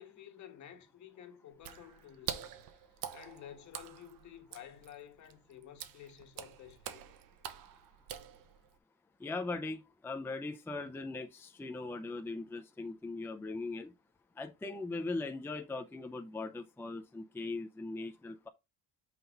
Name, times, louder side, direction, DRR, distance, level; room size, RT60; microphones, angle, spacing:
voice 1, 0.0-2.7 3.1-7.1, left 10 dB, 55° left, 1.7 m, -52 dB
Water / Splash splatter, 1.5-8.8, right 10 dB, 75° right, 1.1 m, -46 dB
voice 2, 9.2-13.9 14.4-18.5, left 3 dB, 5° left, 0.5 m, -40 dB
5.8 x 4.2 x 5.2 m
cardioid pair, 150°, 34 cm